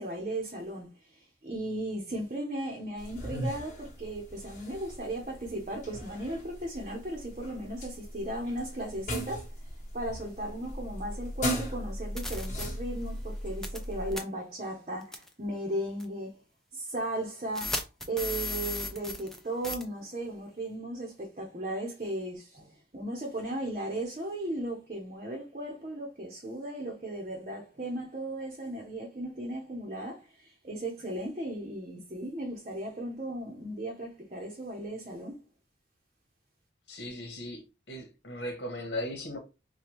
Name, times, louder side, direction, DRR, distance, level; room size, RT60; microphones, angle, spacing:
voice 1, 0.0-9.5 9.9-16.4 16.7-17.8 18.1-35.4, right 1 dB, 40° right, 0.8 m, -36 dB
sound 1, 3.0-14.2, equal, 40° left, 1.4 m, -38 dB
sound 2, 11.6-11.7 12.2-12.7 13.6-13.8 14.1-14.2 15.1-15.3 16.0-16.1 17.5-19.4 19.6-19.8, left 1 dB, ahead, 0.5 m, -34 dB
voice 2, 36.9-37.6 37.9-39.4, left 1 dB, 70° left, 1.2 m, -37 dB
5.1 x 2.3 x 3.0 m
head